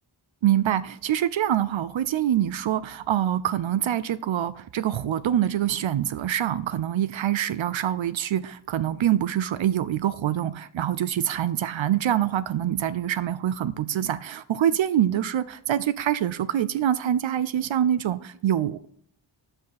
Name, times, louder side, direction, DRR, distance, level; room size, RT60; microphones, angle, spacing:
voice 1, 0.4-18.9, right 11 dB, 75° right, 16 dB, 0.6 m, -25 dB
12.0 x 5.4 x 4.0 m, 0.65 s
wide cardioid pair, 80°, 48 cm